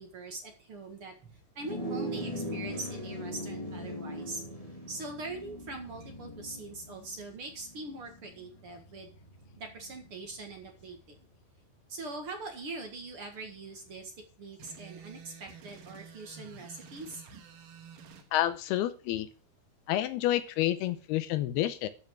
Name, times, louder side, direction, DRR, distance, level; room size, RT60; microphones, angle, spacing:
voice 1, 0.0-4.4 4.9-9.1 9.6-11.2 11.9-14.1 14.4-17.2, right 3 dB, 45° right, 4 dB, 1.9 m, -42 dB
sound 1, 1.6-11.2, equal, 15° left, 1.3 m, -41 dB
sound 2, 14.6-18.3, right 6 dB, 65° right, 2.8 m, -50 dB
voice 2, 18.3-19.3 19.9-21.9, left 13 dB, 85° left, 12 dB, 2.7 m, -29 dB
13.0 x 5.6 x 6.1 m, 0.37 s
omnidirectional pair, 4.5 m